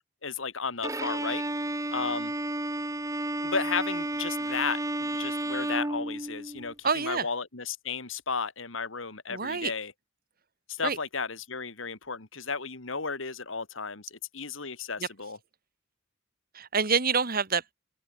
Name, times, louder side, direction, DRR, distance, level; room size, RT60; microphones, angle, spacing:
voice 1, 0.2-1.4 1.9-2.3 3.4-9.9 10.7-15.4, left 5 dB, 75° left, 2.4 m, -34 dB
Bowed string instrument, 0.8-6.7, right 1 dB, 15° right, 3.8 m, -32 dB
voice 2, 6.8-7.3 9.3-9.7 10.8-11.0 15.0-15.1 16.5-17.7, right 5 dB, 45° right, 2.4 m, -27 dB
open air
head